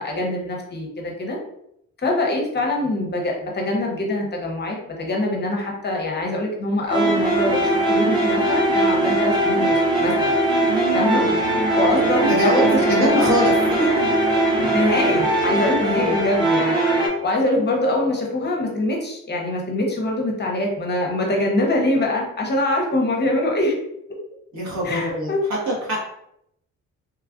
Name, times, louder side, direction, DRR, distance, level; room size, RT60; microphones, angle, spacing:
voice 1, 0.0-1.4 2.0-10.3 10.9-11.2 11.7-13.2 14.7-16.7 17.2-23.8 24.8-25.4, left 1 dB, 35° left, 0 dB, 0.7 m, -23 dB
sound 1, 6.9-17.1, right 1 dB, 15° right, 0.9 m, -20 dB
voice 2, 10.7-11.4 12.3-13.9 15.9-16.2 24.5-25.3 25.7-26.0, right 1 dB, 65° right, -4 dB, 1.3 m, -24 dB
3.0 x 2.4 x 2.4 m, 0.77 s
cardioid pair, 90°, 30 cm